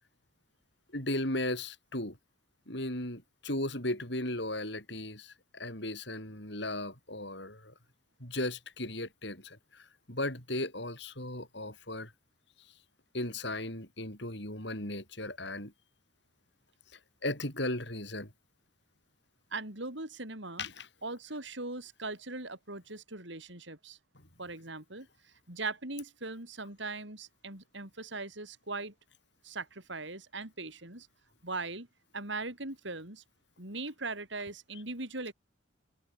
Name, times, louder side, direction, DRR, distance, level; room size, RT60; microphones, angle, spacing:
voice 1, 0.9-2.2 2.7-7.7 8.2-12.1 13.1-15.7 17.2-18.3 20.6-20.9, left 1 dB, 60° left, 7.9 m, -36 dB
voice 2, 19.5-20.7 21.0-24.0 24.4-25.1 25.5-28.9 29.4-31.1 31.4-31.9 32.1-33.2 33.6-35.3, right 3 dB, 65° right, 5.6 m, -40 dB
head